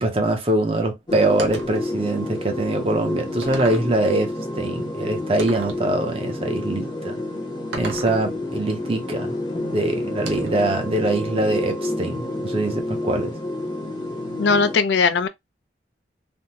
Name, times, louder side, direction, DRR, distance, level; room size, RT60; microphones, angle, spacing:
voice 1, 0.0-7.2 7.7-9.4 9.7-13.3, right 2 dB, 30° right, 0.6 m, -23 dB
sound 1, 1.1-14.8, left 1 dB, 25° left, 0.7 m, -29 dB
sound 2, 1.4-1.8 2.6-2.7 3.4-3.9 5.4-5.8 7.7-8.2 10.2-10.7, right 3 dB, 90° right, 0.8 m, -35 dB
voice 2, 14.4-15.3, left 4 dB, 85° left, 0.4 m, -19 dB
3.4 x 2.0 x 2.8 m
head